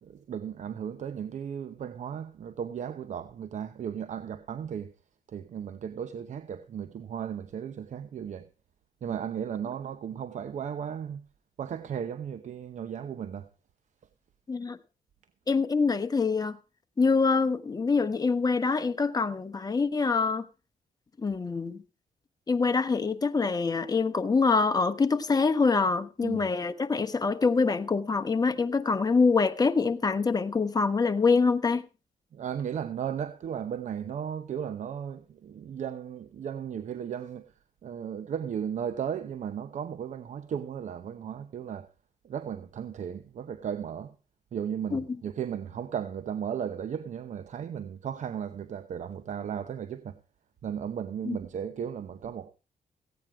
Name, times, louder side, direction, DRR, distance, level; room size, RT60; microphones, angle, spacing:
voice 1, 0.0-4.9 5.3-8.5 9.0-11.3 11.6-13.5 26.2-26.4 32.3-37.4 37.8-41.9 42.2-44.1 44.5-50.2 50.6-52.5, right 8 dB, 60° right, 0.9 m, -35 dB
voice 2, 15.5-16.5 17.0-20.4 21.2-21.8 22.5-31.8 44.9-45.0 51.3-51.4, left 4 dB, 25° left, 1.1 m, -25 dB
15.5 x 9.2 x 4.6 m
cardioid pair, 95°, 14 cm